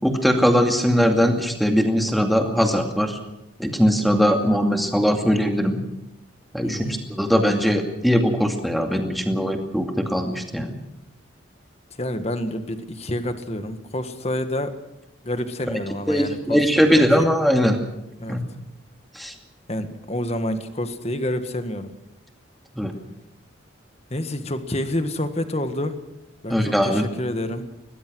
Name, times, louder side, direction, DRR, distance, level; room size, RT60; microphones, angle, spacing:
voice 1, 0.0-3.2 3.6-5.8 6.5-10.7 16.1-17.8 18.3-18.4 19.1-19.3 22.8-22.9 26.5-27.0, equal, ahead, 4 dB, 2.3 m, -20 dB
voice 2, 6.6-7.0 12.0-14.8 15.2-17.3 18.2-18.4 19.7-21.9 24.1-26.0 26.4-27.7, left 1 dB, 30° left, 9 dB, 1.7 m, -28 dB
22.0 x 19.5 x 6.3 m, 0.91 s
head